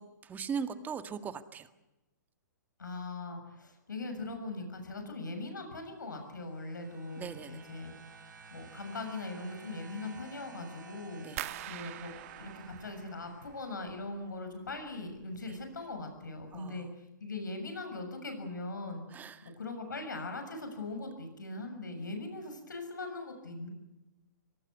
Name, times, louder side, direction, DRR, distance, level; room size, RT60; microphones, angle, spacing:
voice 1, 0.0-1.7 7.2-7.6 11.2-11.4 16.5-16.9 19.1-19.5, right 6 dB, 15° right, 10 dB, 1.8 m, -39 dB
voice 2, 2.8-7.9 8.5-23.7, left 2 dB, 80° left, 5 dB, 6.8 m, -41 dB
sound 1, 6.1-13.9 14.9-15.0, right 4 dB, 80° right, 5.9 m, -53 dB
sound 2, 11.4-14.2 14.5-15.2 15.6-16.0 16.4-16.6, right 15 dB, 50° right, 1.2 m, -44 dB
24.0 x 19.0 x 9.5 m, 0.99 s
hypercardioid pair, 125°, 10 cm